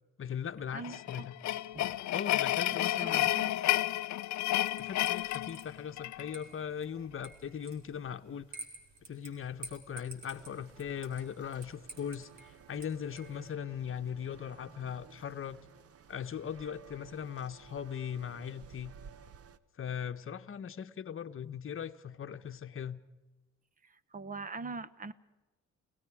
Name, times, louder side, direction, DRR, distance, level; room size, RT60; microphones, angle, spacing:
voice 1, 0.2-1.3 2.1-3.3 4.8-8.5 9.0-15.6 16.1-18.9 19.8-23.0, left 8 dB, 45° left, 1.1 m, -39 dB
voice 2, 0.7-1.3 1.7-2.0 3.0-3.5 23.8-25.1, right 4 dB, 25° right, 1.0 m, -43 dB
sound 1, 0.8-6.3, left 14 dB, 65° left, 0.6 m, -31 dB
sound 2, 4.7-13.5, right 3 dB, 70° right, 4.3 m, -52 dB
sound 3, 10.3-19.6, right 7 dB, 50° right, 1.1 m, -55 dB
30.0 x 18.5 x 4.8 m
cardioid pair, 90°, 30 cm